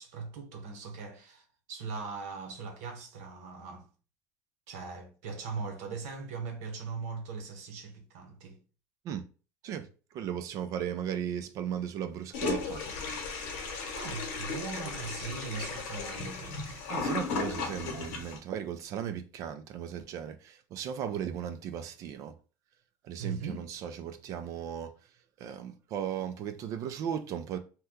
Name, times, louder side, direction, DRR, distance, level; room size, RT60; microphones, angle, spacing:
voice 1, 0.0-3.9 4.7-8.6 13.9-16.9 23.2-23.6, right 5 dB, 85° right, 0.9 m, -40 dB
voice 2, 9.6-12.8 16.9-22.3 23.0-24.9 25.4-27.6, right 9 dB, 40° right, 0.4 m, -36 dB
Toilet flush, 12.3-18.4, left 5 dB, 85° left, 0.9 m, -35 dB
2.8 x 2.2 x 3.5 m
cardioid pair, 165°, 8 cm